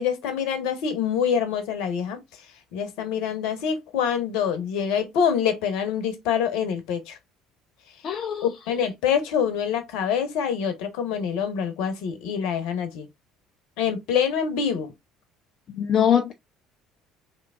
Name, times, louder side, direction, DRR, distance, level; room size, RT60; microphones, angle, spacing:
voice 1, 0.0-2.2 2.7-7.2 8.4-13.1 13.8-14.9, left 7 dB, 65° left, 1.0 m, -25 dB
voice 2, 8.0-8.5 15.7-16.3, left 9 dB, 45° left, 0.5 m, -22 dB
4.5 x 3.5 x 2.3 m
figure-of-eight pair, 60°, 0 cm